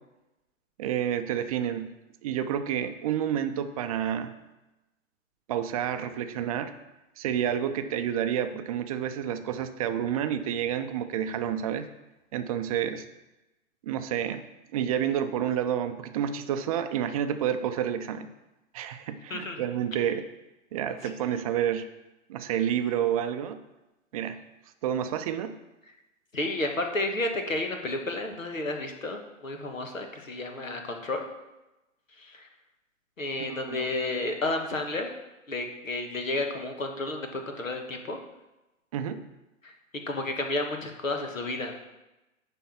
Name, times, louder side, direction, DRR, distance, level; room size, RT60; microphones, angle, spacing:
voice 1, 0.8-1.9 2.2-4.3 5.5-6.7 7.2-11.9 12.3-13.0 13.8-14.4 14.7-18.3 18.7-20.2 20.7-21.8 22.3-23.6 24.1-24.4 24.8-25.5 33.4-33.9 38.9-39.2, right 9 dB, 30° right, 8 dB, 0.5 m, -29 dB
voice 2, 26.3-31.2 32.2-32.5 33.2-35.1 35.5-38.2 39.6-39.7 40.1-41.7, left 2 dB, 80° left, 4 dB, 1.4 m, -31 dB
10.0 x 3.5 x 5.9 m, 1.0 s
figure-of-eight pair, 110°, 40 cm